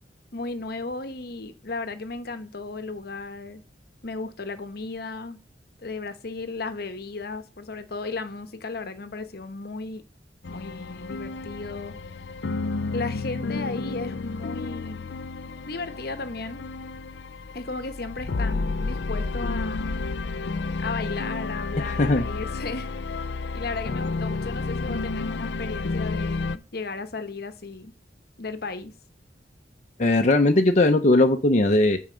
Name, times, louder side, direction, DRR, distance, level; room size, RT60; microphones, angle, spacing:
voice 1, 0.3-3.6 4.0-5.4 5.8-10.0 10.5-11.9 12.9-15.0 15.7-16.7 17.5-20.0 20.8-23.3 23.5-27.9 28.4-28.9, left 3 dB, 60° left, 1.0 m, -35 dB
sound 1, 10.4-26.6, left 3 dB, 80° left, 0.5 m, -31 dB
voice 2, 21.8-22.3 30.0-32.0, left 2 dB, 45° left, 0.8 m, -19 dB
8.8 x 4.7 x 5.2 m
head